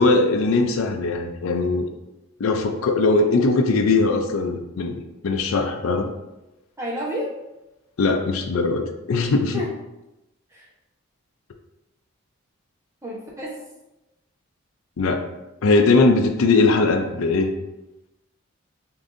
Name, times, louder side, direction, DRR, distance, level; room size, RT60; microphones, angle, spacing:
voice 1, 0.0-1.9 2.4-6.1 8.0-9.6 15.0-15.2 15.6-17.5, left 3 dB, 80° left, 4 dB, 0.5 m, -20 dB
voice 2, 6.8-7.3 9.5-9.7 10.5-10.7 13.0-13.6, equal, 15° right, -5 dB, 0.9 m, -30 dB
6.6 x 2.6 x 2.6 m, 0.95 s
head